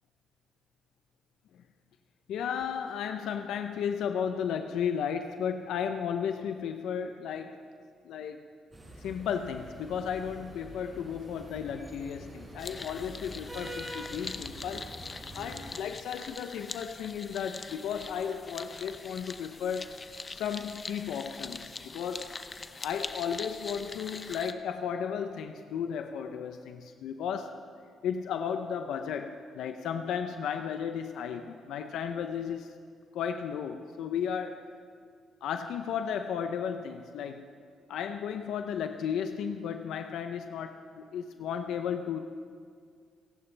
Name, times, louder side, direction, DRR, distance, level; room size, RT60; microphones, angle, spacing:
voice 1, 2.3-7.6 8.0-8.4 9.0-14.9 15.3-20.0 20.3-22.3 22.8-27.6 28.0-32.7 33.1-34.6 35.4-37.5 37.9-42.2, left 7 dB, 80° left, 7 dB, 0.7 m, -34 dB
sound 1, 8.7-15.8, right 1 dB, 20° right, 5.0 m, -46 dB
sound 2, 12.6-24.5, left 4 dB, 30° left, 0.8 m, -43 dB
29.5 x 11.0 x 3.4 m, 2.1 s
cardioid pair, 90°, 0 cm